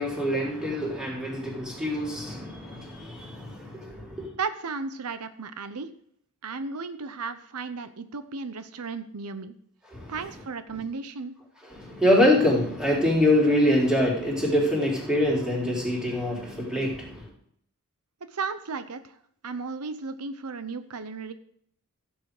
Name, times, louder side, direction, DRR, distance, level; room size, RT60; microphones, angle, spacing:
voice 1, 0.0-4.3 9.9-10.1 11.6-17.3, left 1 dB, 5° right, -4 dB, 4.0 m, -25 dB
voice 2, 4.4-5.9 6.4-9.5 10.1-11.3 18.3-19.1 19.4-21.3, right 4 dB, 90° right, 11 dB, 0.8 m, -34 dB
15.0 x 8.3 x 4.9 m, 0.68 s
head